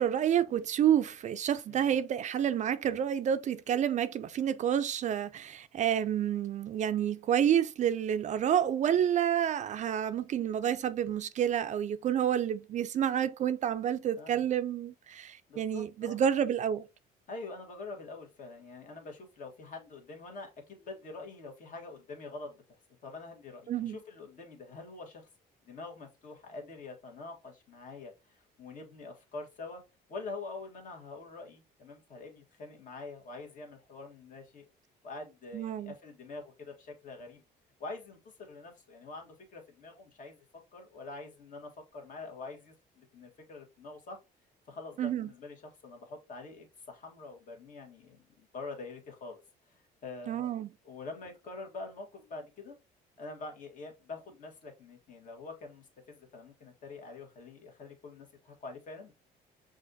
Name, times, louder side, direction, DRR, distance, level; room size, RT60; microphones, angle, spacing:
voice 1, 0.0-16.9 23.7-24.0 35.5-35.9 45.0-45.3 50.3-50.7, right 9 dB, 45° right, 0.4 m, -29 dB
voice 2, 15.5-16.2 17.3-25.3 25.7-29.8 30.1-34.6 35.0-37.4 37.8-40.4 40.7-44.2 44.7-49.4 49.7-50.5 50.8-52.8 53.2-59.1, left 3 dB, 50° left, 1.5 m, -45 dB
6.2 x 2.5 x 2.7 m
cardioid pair, 110°, 17 cm